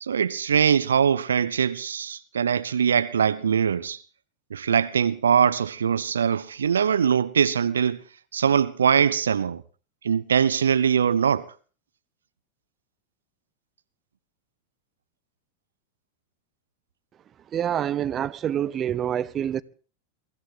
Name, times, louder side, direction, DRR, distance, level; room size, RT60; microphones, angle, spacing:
voice 1, 0.0-4.0 4.5-8.0 8.3-9.6 10.0-11.5, right 7 dB, 80° right, 0.7 m, -22 dB
voice 2, 17.5-19.6, right 10 dB, 35° right, 0.9 m, -26 dB
23.5 x 14.5 x 3.9 m
hypercardioid pair, 90°, 0 cm